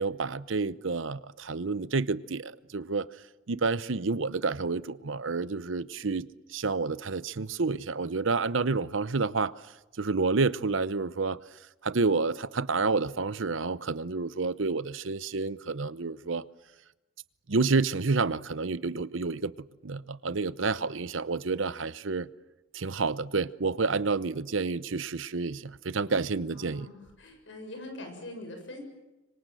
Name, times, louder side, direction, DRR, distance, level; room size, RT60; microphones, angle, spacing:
voice 1, 0.0-3.1 3.5-9.5 10.0-11.4 11.8-16.4 17.5-19.5 19.8-22.3 22.7-26.9, right 4 dB, 80° right, 0.8 m, -29 dB
voice 2, 26.5-28.8, left 1 dB, 70° left, 7.5 m, -43 dB
26.0 x 25.0 x 7.7 m
head